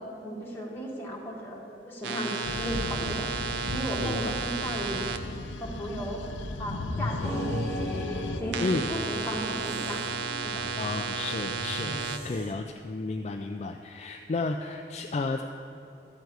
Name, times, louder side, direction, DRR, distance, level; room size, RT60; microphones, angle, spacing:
voice 1, 0.0-3.3 3.7-5.1 5.6-6.2 6.6-8.0 8.4-10.1 10.4-10.7, equal, 10° left, -4 dB, 1.7 m, -35 dB
sound 1, 2.0-5.2 8.5-12.2, right 5 dB, 75° right, 0.6 m, -33 dB
sound 2, 2.4-8.4, left 2 dB, 85° left, 0.6 m, -35 dB
voice 2, 4.0-4.4 8.6-8.9 10.8-15.4, left 3 dB, 35° left, 4 dB, 0.3 m, -32 dB
sound 3, 7.2-12.5, right 1 dB, 30° right, 1.1 m, -39 dB
13.0 x 4.6 x 7.9 m, 2.8 s
head